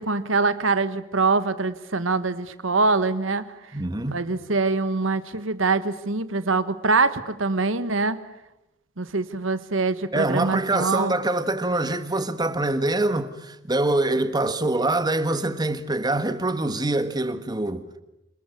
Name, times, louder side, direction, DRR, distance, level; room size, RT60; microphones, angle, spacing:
voice 1, 0.0-3.5 4.1-8.2 9.0-11.1, right 3 dB, 85° right, 1.4 m, -24 dB
voice 2, 3.7-4.2 10.1-17.9, right 2 dB, 20° right, 1.5 m, -24 dB
27.5 x 20.5 x 8.5 m
head